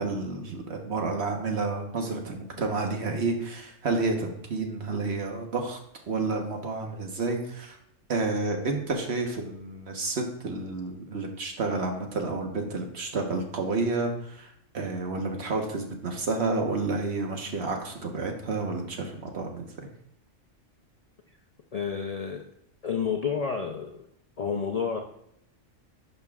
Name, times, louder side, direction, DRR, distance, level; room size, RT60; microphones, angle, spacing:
voice 1, 0.0-5.8 6.1-7.8 8.1-19.9, right 3 dB, 55° right, 3 dB, 1.4 m, -30 dB
voice 2, 21.7-22.4 22.8-24.0 24.4-25.0, left 6 dB, 40° left, 3 dB, 0.6 m, -30 dB
11.0 x 6.7 x 2.4 m, 0.75 s
omnidirectional pair, 1.3 m